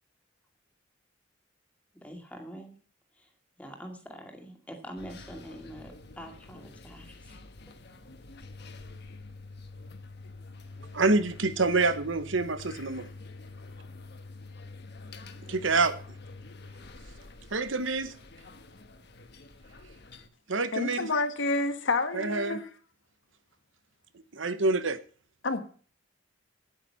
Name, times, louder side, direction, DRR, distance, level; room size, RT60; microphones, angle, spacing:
voice 1, 1.9-2.7 3.1-3.3 3.6-7.4, equal, 5° left, 2.1 m, -45 dB
sound 1, 5.0-20.3, left 3 dB, 60° left, 1.3 m, -47 dB
voice 2, 10.9-13.1 15.5-15.9 17.5-18.1 20.5-21.1 22.1-22.6 24.3-25.0, right 3 dB, 80° right, 1.0 m, -26 dB
voice 3, 20.7-22.7 25.4-25.6, left 3 dB, 75° left, 1.4 m, -29 dB
9.1 x 9.1 x 5.7 m
head